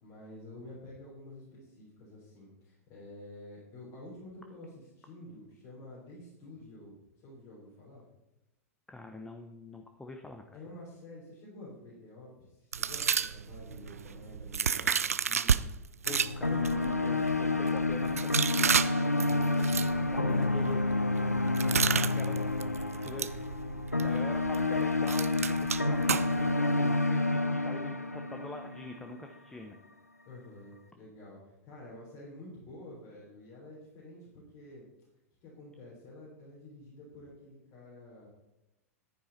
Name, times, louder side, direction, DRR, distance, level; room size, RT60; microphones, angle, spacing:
voice 1, 0.0-8.1 10.5-15.7 19.0-20.5 30.2-34.8 35.4-38.3, left 1 dB, 40° left, -6 dB, 3.7 m, -49 dB
voice 2, 8.9-10.6 16.1-18.8 19.3-21.0 21.5-23.4 24.0-29.8, left 2 dB, 10° left, 5 dB, 0.9 m, -45 dB
sound 1, 12.7-15.6 16.0-26.6, right 7 dB, 75° right, 0.4 m, -33 dB
sound 2, 16.1-29.2, left 2 dB, 90° left, 0.7 m, -29 dB
10.5 x 9.9 x 4.1 m, 0.94 s
figure-of-eight pair, 95°, 8 cm